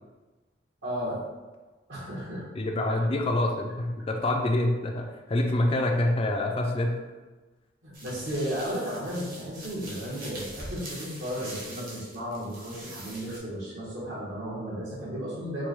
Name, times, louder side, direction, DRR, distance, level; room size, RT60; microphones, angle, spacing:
voice 1, 0.8-1.2 1.9-2.5 7.8-15.7, equal, 65° right, -6 dB, 1.2 m, -34 dB
voice 2, 2.6-7.0, left 1 dB, 30° left, 2 dB, 0.4 m, -26 dB
sound 1, 7.9-13.4, right 1 dB, 50° right, 1.1 m, -43 dB
4.6 x 2.2 x 3.0 m, 1.2 s
head